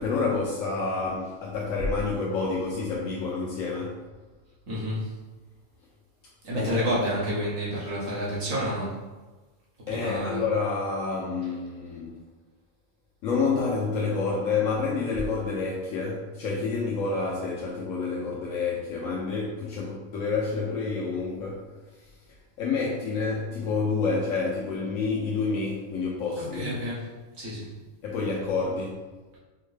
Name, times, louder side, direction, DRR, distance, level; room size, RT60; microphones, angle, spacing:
voice 1, 0.0-4.0 6.5-7.0 9.9-12.2 13.2-22.1 22.6-26.7 28.0-29.1, left 4 dB, 80° left, -4 dB, 1.0 m, -28 dB
voice 2, 4.7-5.1 6.4-9.0 9.9-10.4 26.4-27.1 27.4-27.7, equal, 60° right, -6 dB, 1.3 m, -29 dB
4.6 x 2.1 x 3.2 m, 1.3 s
omnidirectional pair, 1.4 m